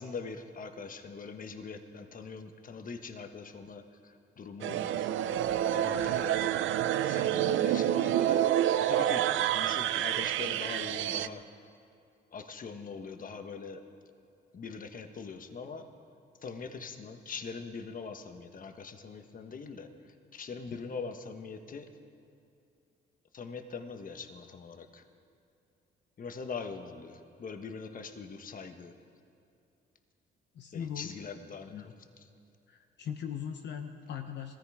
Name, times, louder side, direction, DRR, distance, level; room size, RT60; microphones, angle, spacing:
voice 1, 0.0-5.1 5.7-6.4 7.0-8.5 8.8-11.4 12.3-13.8 14.5-15.9 16.4-21.9 23.3-25.0 26.2-29.0 30.7-31.7, left 5 dB, 45° left, 7 dB, 1.3 m, -42 dB
sound 1, 4.6-11.3, right 11 dB, 80° right, 0.5 m, -28 dB
voice 2, 30.5-31.3 31.7-31.9 32.7-34.5, left 8 dB, 60° left, 5 dB, 1.0 m, -39 dB
18.5 x 14.0 x 4.9 m, 2.6 s
cardioid pair, 90°, 20 cm